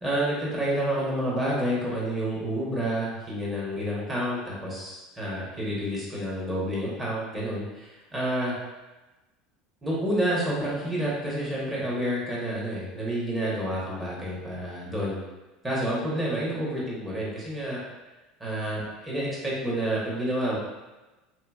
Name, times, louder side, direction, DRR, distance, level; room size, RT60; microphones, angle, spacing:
voice 1, 0.0-8.5 9.8-15.2 15.6-17.8 18.4-20.6, right 1 dB, 15° right, -6 dB, 1.1 m, -29 dB
3.4 x 2.7 x 2.3 m, 1.1 s
supercardioid pair, 120°, 0 cm